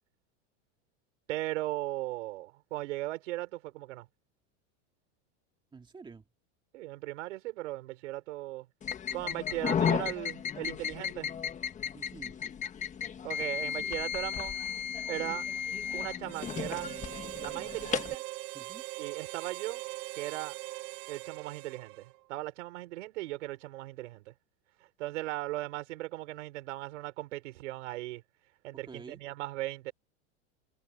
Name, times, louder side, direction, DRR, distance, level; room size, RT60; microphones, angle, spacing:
voice 1, 1.3-4.1 6.7-8.7 9.1-11.3 13.2-14.6 15.1-15.5 15.9-17.0 17.4-18.2 19.0-19.8 20.1-20.6 21.1-24.3 25.0-28.2 28.6-29.9, right 18 dB, 75° right, 4.7 m, -38 dB
voice 2, 5.7-6.2 11.9-12.4 18.5-18.8 28.8-29.2, right 4 dB, 15° right, 2.5 m, -48 dB
sound 1, 8.8-18.2, left 8 dB, 20° left, 1.5 m, -34 dB
Harmonica, 16.3-22.2, right 21 dB, 40° right, 0.8 m, -41 dB
supercardioid pair, 145°, 36 cm